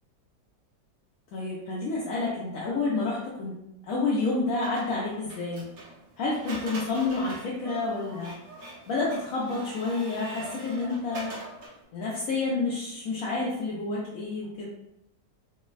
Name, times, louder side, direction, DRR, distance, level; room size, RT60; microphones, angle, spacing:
voice 1, 1.3-3.5 3.8-5.6 6.2-8.3 8.9-11.3 11.9-14.7, left 3 dB, 70° left, -6 dB, 0.8 m, -29 dB
Printer, 4.6-11.8, right 1 dB, 60° right, 1.0 m, -44 dB
sound 1, 4.9-11.7, right 1 dB, 80° right, 1.4 m, -48 dB
3.3 x 2.0 x 2.3 m, 0.83 s
omnidirectional pair, 1.9 m